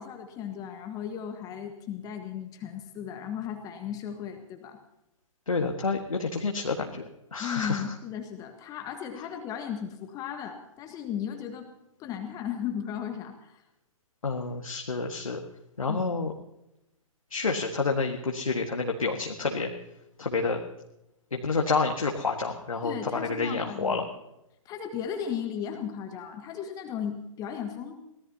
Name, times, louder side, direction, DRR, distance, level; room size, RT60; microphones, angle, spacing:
voice 1, 0.0-4.8 7.4-11.7 12.0-13.6 15.9-16.1 22.8-24.1 24.6-27.9, left 8 dB, 20° left, 5 dB, 1.5 m, -36 dB
voice 2, 5.5-7.0 7.3-7.8 14.2-15.4 15.8-16.3 17.3-19.7 20.2-20.6 21.3-24.0, left 4 dB, 75° left, 2 dB, 1.8 m, -29 dB
24.5 x 17.5 x 2.9 m, 0.88 s
figure-of-eight pair, 120°, 18 cm